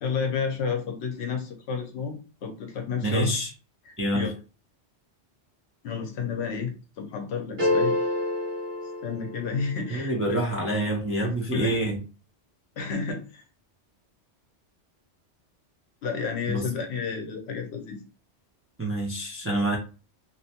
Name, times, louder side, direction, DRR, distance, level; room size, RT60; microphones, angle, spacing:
voice 1, 0.0-3.4 3.9-4.3 5.8-8.0 9.0-10.4 11.2-11.7 12.8-13.4 16.0-18.0, left 5 dB, 70° left, 3 dB, 0.8 m, -31 dB
voice 2, 3.0-3.5 4.0-4.3 9.9-12.0 16.5-16.6 18.8-19.8, right 1 dB, 20° right, -1 dB, 0.3 m, -27 dB
sound 1, 7.6-9.8, left 2 dB, 80° right, 1.3 m, -27 dB
2.7 x 2.1 x 2.8 m, 0.33 s
omnidirectional pair, 1.2 m